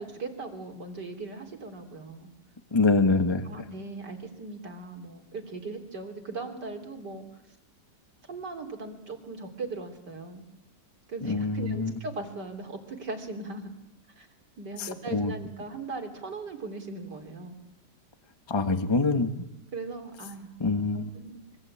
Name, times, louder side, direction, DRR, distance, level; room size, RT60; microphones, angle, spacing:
voice 1, 0.0-2.3 3.4-7.4 8.3-10.5 11.1-13.7 14.2-14.3 14.6-17.6 19.7-20.5 20.9-21.4, right 3 dB, 70° right, 5 dB, 3.9 m, -39 dB
voice 2, 2.7-3.4 11.2-11.9 14.8-15.3 18.5-19.4 20.6-21.1, left 3 dB, 15° left, 8 dB, 1.3 m, -25 dB
25.5 x 24.0 x 8.7 m, 0.89 s
omnidirectional pair, 1.9 m